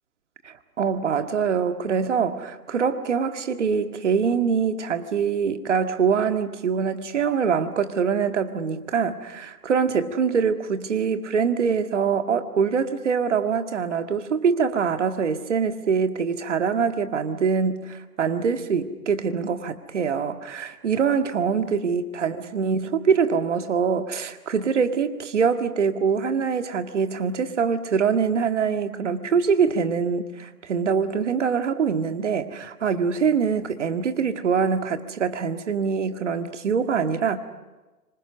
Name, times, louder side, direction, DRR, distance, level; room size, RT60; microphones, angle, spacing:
voice 1, 0.4-37.4, right 6 dB, 45° right, 1.9 m, -24 dB
26.5 x 25.5 x 6.4 m
figure-of-eight pair, 140°, 47 cm